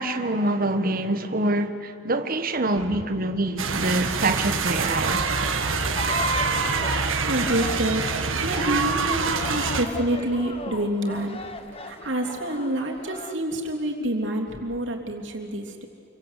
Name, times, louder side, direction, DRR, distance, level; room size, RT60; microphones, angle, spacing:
voice 1, 0.0-5.2, right 1 dB, 45° right, 1.4 m, -25 dB
sound 1, 3.6-9.9, right 4 dB, 85° right, 1.8 m, -25 dB
sound 2, 6.0-13.3, left 3 dB, 30° left, 1.4 m, -38 dB
voice 2, 7.3-8.1 8.4-11.4 11.8-15.9, right 1 dB, 65° right, 3.3 m, -27 dB
28.5 x 24.0 x 8.3 m
head